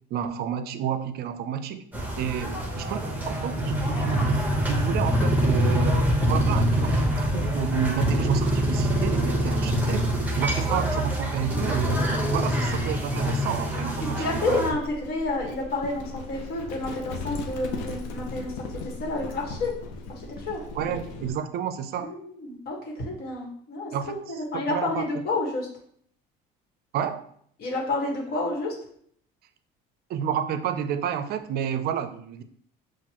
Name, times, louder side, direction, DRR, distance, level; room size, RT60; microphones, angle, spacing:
voice 1, 0.1-1.8 2.2-10.1 10.4-12.0 12.3-14.6 20.7-22.1 23.9-25.1 26.9-27.3 30.1-32.4, right 8 dB, 55° right, 10 dB, 0.5 m, -30 dB
sound 1, 1.9-14.7, equal, 10° right, 1.0 m, -25 dB
voice 2, 14.2-18.5 18.8-19.7 20.4-20.6 22.0-24.2 24.5-25.7 27.6-28.7, left 2 dB, 55° left, -1 dB, 1.4 m, -29 dB
Livestock farm animals working animals, 14.7-21.4, left 2 dB, 75° left, 0.7 m, -37 dB
5.9 x 2.4 x 2.9 m, 0.63 s
cardioid pair, 105°, 19 cm